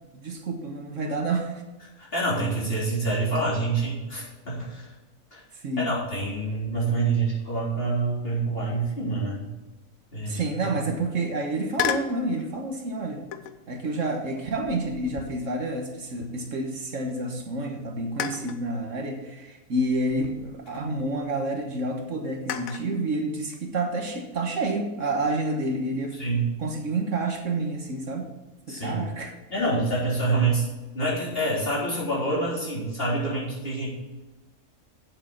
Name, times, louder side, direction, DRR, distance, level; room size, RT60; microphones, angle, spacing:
voice 1, 0.1-1.6 5.6-5.9 10.3-13.2 13.7-26.2 26.6-28.3 28.7-29.4, right 2 dB, 60° right, 3 dB, 1.5 m, -29 dB
voice 2, 2.0-4.9 5.3-5.4 5.8-9.5 10.1-10.4 10.7-10.8 26.2-26.5 28.7-29.0 29.5-30.6 30.9-33.9, right 2 dB, 40° left, -6 dB, 3.8 m, -26 dB
sound 1, 11.7-12.2 13.3-13.7 14.4-16.7 17.1-17.2 18.2-18.6 19.8-21.2 22.5-22.9, left 9 dB, 75° left, 1.1 m, -34 dB
8.8 x 7.5 x 5.7 m, 1.2 s
omnidirectional pair, 1.5 m